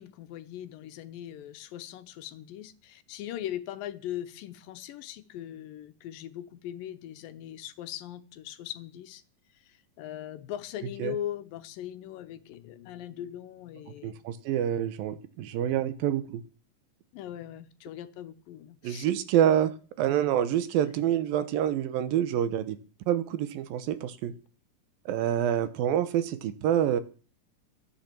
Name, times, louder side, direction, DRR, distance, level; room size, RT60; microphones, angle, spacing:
voice 1, 0.0-9.2 9.6-14.2 17.1-19.1, left 11 dB, 80° left, 2.6 m, -40 dB
voice 2, 14.0-16.4 18.8-19.7 20.0-22.8 23.1-24.3 25.1-27.0, right 10 dB, 90° right, 2.9 m, -27 dB
13.5 x 9.7 x 7.5 m
omnidirectional pair, 4.0 m